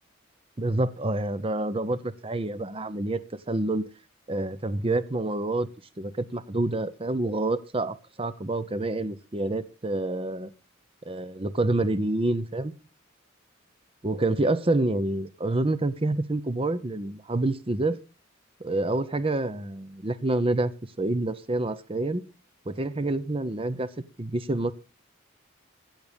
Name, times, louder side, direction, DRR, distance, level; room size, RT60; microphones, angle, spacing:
voice 1, 0.6-3.2 3.5-3.8 4.3-5.7 6.0-10.5 11.0-12.7 14.0-18.0 18.6-20.7 21.0-22.2 22.7-23.9 24.2-24.7, right 2 dB, 25° right, 0.7 m, -27 dB
15.5 x 7.8 x 5.1 m
head